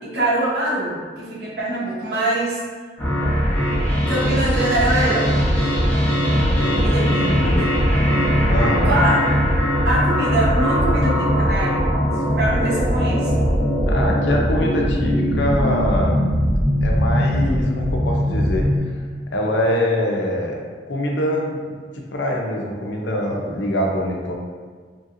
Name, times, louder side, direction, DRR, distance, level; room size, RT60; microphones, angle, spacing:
voice 1, 0.0-2.6 4.1-5.3 6.7-7.3 8.9-9.2 9.8-11.8 12.4-13.3, right 1 dB, 60° right, -7 dB, 0.9 m, -23 dB
sound 1, 3.0-18.8, equal, 10° left, 0.7 m, -20 dB
voice 2, 6.6-7.7 8.5-9.0 13.9-16.2 16.8-18.9 19.3-20.6 20.9-21.6 22.1-24.3, left 1 dB, 80° left, 0 dB, 0.5 m, -23 dB
3.1 x 2.7 x 2.5 m, 1.5 s
head